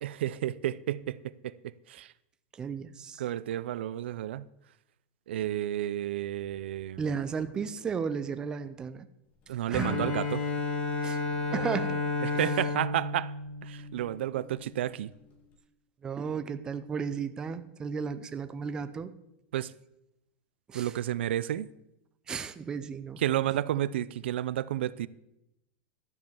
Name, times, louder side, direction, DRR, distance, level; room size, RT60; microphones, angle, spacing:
voice 1, 0.0-1.2 1.4-1.5 1.9-2.1 3.2-4.5 5.3-7.0 9.5-10.4 12.2-13.3 13.6-15.1 19.5-19.7 20.7-21.7 23.2-25.1, right 12 dB, 85° right, 0.5 m, -31 dB
voice 2, 2.5-3.2 7.0-9.1 9.7-10.1 11.0-11.2 11.5-12.0 12.3-12.4 16.0-19.1 20.7-21.0 22.3-23.2, right 6 dB, 15° right, 0.4 m, -34 dB
Bowed string instrument, 9.7-14.6, left 3 dB, 25° left, 1.8 m, -32 dB
12.0 x 5.4 x 7.1 m
supercardioid pair, 170°, 6 cm